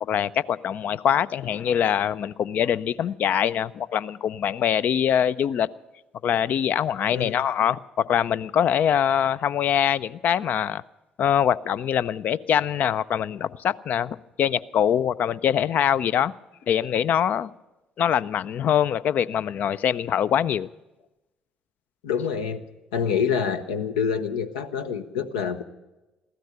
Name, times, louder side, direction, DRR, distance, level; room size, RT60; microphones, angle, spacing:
voice 1, 0.0-5.7 6.2-10.8 11.2-16.3 16.7-17.5 18.0-20.7, left 9 dB, 55° left, 17 dB, 0.4 m, -23 dB
voice 2, 22.0-22.6 22.9-25.6, left 7 dB, 80° left, 8 dB, 0.7 m, -26 dB
15.0 x 13.0 x 6.8 m, 1.0 s
hypercardioid pair, 50°, 3 cm